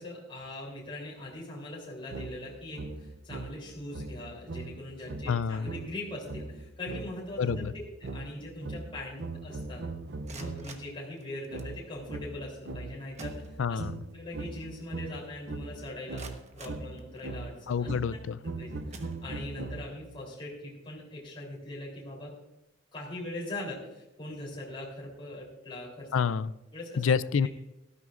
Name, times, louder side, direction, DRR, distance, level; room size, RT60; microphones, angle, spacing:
voice 1, 0.0-7.4 7.7-9.8 10.3-13.8 14.1-16.3 16.5-17.9 18.4-22.3 22.9-26.1 26.7-27.0, left 1 dB, 25° left, -4 dB, 3.4 m, -41 dB
sound 1, 2.1-10.9 11.5-20.2, right 2 dB, 60° right, 0.6 m, -40 dB
voice 2, 5.3-5.7 7.4-7.7 13.6-13.9 17.7-18.4 26.1-26.5 27.0-27.5, left 6 dB, 85° left, 16 dB, 0.4 m, -28 dB
sound 2, 10.1-11.8 12.7-12.8 13.1-14.0 14.4-14.5 15.1-15.2 15.7-17.6 18.2-18.4 18.9-19.7, right 4 dB, 35° right, 1.2 m, -51 dB
18.5 x 12.5 x 2.5 m, 0.94 s
head